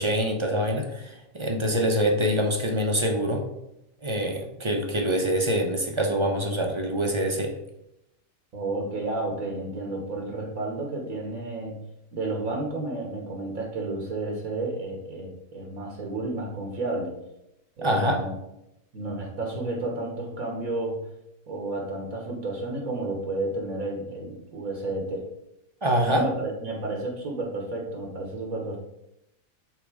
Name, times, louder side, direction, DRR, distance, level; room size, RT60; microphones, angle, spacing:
voice 1, 0.0-3.4 4.0-7.5 17.8-18.2 25.8-26.3, equal, 25° right, 1 dB, 0.7 m, -25 dB
voice 2, 8.5-11.8 12.1-17.1 17.8-18.3 18.9-21.0 21.5-25.3 26.1-28.8, right 2 dB, 75° right, 1 dB, 1.7 m, -31 dB
5.7 x 4.1 x 4.9 m, 0.85 s
omnidirectional pair, 1.5 m